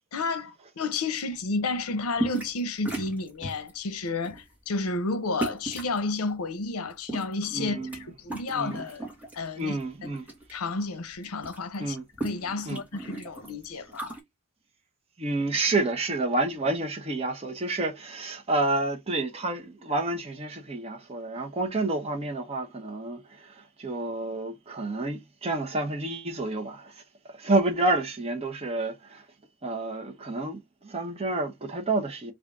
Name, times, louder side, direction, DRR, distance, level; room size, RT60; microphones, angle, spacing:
voice 1, 0.1-9.0 9.3-10.1 10.5-14.1, left 3 dB, 85° left, 0.7 m, -31 dB
sound 1, 2.1-2.6 2.8-3.7 4.2-4.5 5.4-6.0 6.8-8.0 8.2-9.4 9.8-10.5 10.8-10.9 11.1-14.2, right 3 dB, 5° right, 1.1 m, -35 dB
voice 2, 7.5-8.0 8.5-8.8 9.6-10.2 11.8-12.0 12.7-12.8 15.2-29.2 29.6-32.3, right 2 dB, 25° right, 0.6 m, -29 dB
3.6 x 2.4 x 3.5 m
head